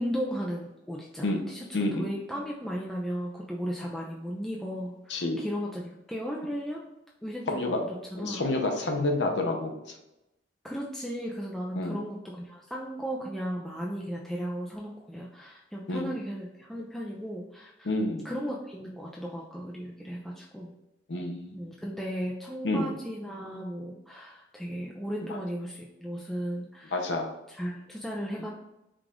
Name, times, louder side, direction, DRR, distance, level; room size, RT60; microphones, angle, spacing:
voice 1, 0.0-6.8 7.2-8.4 10.6-17.9 18.2-20.7 21.5-27.0 27.5-28.5, equal, ahead, -4 dB, 0.4 m, -36 dB
voice 2, 1.7-2.1 5.1-5.4 7.5-7.8 8.2-9.9 11.8-12.0 15.9-16.1 17.8-18.3 21.1-21.7 22.6-22.9 25.3-25.4 26.9-27.3, left 2 dB, 85° left, 2 dB, 0.7 m, -29 dB
4.8 x 2.4 x 3.6 m, 0.91 s
head